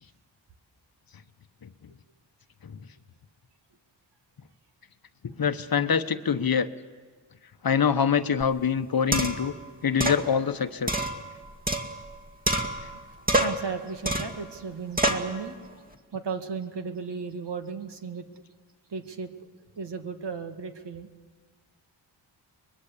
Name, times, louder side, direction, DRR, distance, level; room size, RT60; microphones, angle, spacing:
voice 1, 5.2-6.7 7.6-9.5 9.8-11.1, left 7 dB, 50° left, 10 dB, 1.1 m, -25 dB
sound 1, 8.4-8.5 9.1-9.5 10.0-10.2 10.9-12.1 12.5-13.0 13.3-13.7 14.1-14.4 15.0-15.3, right 1 dB, 20° right, 2.2 m, -27 dB
voice 2, 13.1-15.9 16.1-18.2 18.9-19.3 19.8-21.1, right 5 dB, 60° right, 6 dB, 2.1 m, -35 dB
24.0 x 21.0 x 8.4 m, 1.5 s
cardioid pair, 70°, 46 cm